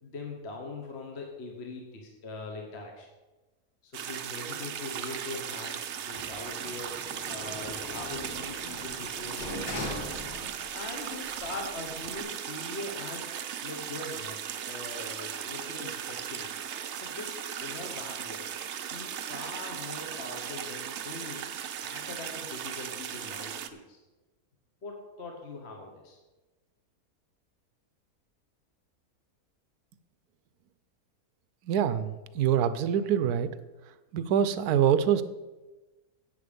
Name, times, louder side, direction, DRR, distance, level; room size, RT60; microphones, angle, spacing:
voice 1, 0.0-3.1 3.8-6.9 7.3-9.9 10.7-13.3 13.6-16.5 16.9-18.5 18.9-21.5 21.8-24.0 24.8-26.2, left 2 dB, 45° left, 1 dB, 1.5 m, -42 dB
sound 1, 3.9-23.7, right 9 dB, 60° right, 0.8 m, -37 dB
Sliding door, 6.1-10.9 11.3-12.2, left 1 dB, 85° left, 2.4 m, -41 dB
voice 2, 31.7-33.5 34.1-35.2, right 9 dB, 85° right, 13 dB, 1.2 m, -25 dB
10.5 x 8.2 x 5.2 m, 1.1 s
omnidirectional pair, 1.6 m